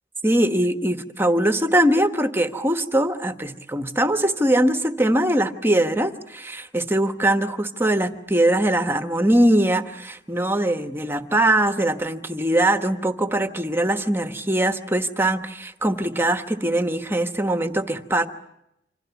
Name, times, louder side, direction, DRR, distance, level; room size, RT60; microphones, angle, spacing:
voice 1, 0.2-18.3, right 1 dB, 15° right, 7 dB, 1.2 m, -21 dB
27.5 x 26.0 x 7.1 m, 0.83 s
head